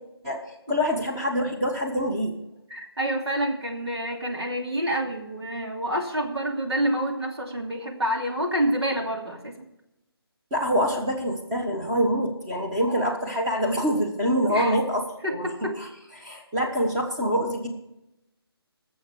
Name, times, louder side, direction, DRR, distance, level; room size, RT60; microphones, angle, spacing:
voice 1, 0.2-2.4 10.5-15.7 16.2-17.7, equal, 15° right, 0 dB, 1.2 m, -25 dB
voice 2, 2.7-9.5 14.5-14.8 15.2-15.7, right 1 dB, 80° right, 1 dB, 2.7 m, -28 dB
19.5 x 7.1 x 4.7 m, 0.88 s
figure-of-eight pair, 155°, 13 cm